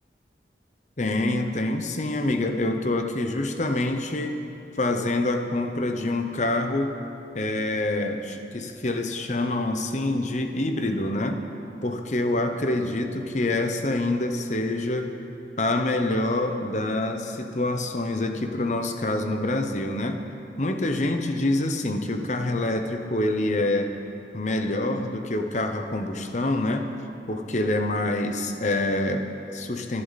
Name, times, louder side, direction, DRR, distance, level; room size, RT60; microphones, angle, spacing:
voice 1, 1.0-4.3 4.8-6.9 7.3-11.4 11.8-15.1 15.6-20.2 20.6-23.9 24.3-26.9 27.3-30.0, left 2 dB, 40° left, 5 dB, 1.0 m, -26 dB
25.5 x 11.5 x 4.2 m, 2.9 s
head